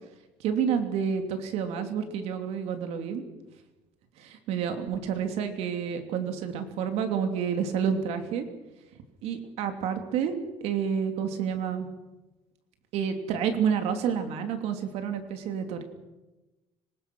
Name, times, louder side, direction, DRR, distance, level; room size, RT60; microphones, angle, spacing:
voice 1, 0.4-3.2 4.2-8.5 9.2-10.4 10.6-11.9 12.9-15.8, right 7 dB, 80° right, 7 dB, 2.9 m, -29 dB
25.5 x 19.5 x 6.2 m, 1.1 s
cardioid pair, 120°, 11 cm